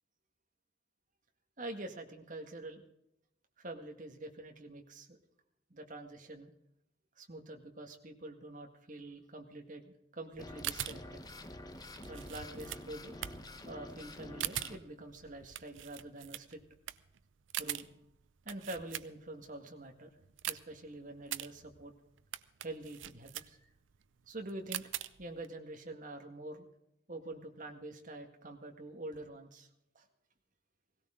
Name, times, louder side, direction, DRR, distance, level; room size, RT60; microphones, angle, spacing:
voice 1, 1.6-2.8 3.6-5.2 5.7-6.5 7.2-11.2 12.1-13.1 13.6-16.6 17.6-17.9 18.5-20.1 20.5-21.9 22.6-23.7 24.3-24.9 25.2-26.7 27.1-29.7 30.0-30.1, right 2 dB, 45° right, 4 dB, 1.9 m, -46 dB
sound 1, 10.3-19.5 19.9-25.5, right 12 dB, 85° right, 0.6 m, -43 dB
sound 2, 10.4-14.8, left 1 dB, 20° left, 1.1 m, -48 dB
17.5 x 17.0 x 3.8 m, 0.82 s
head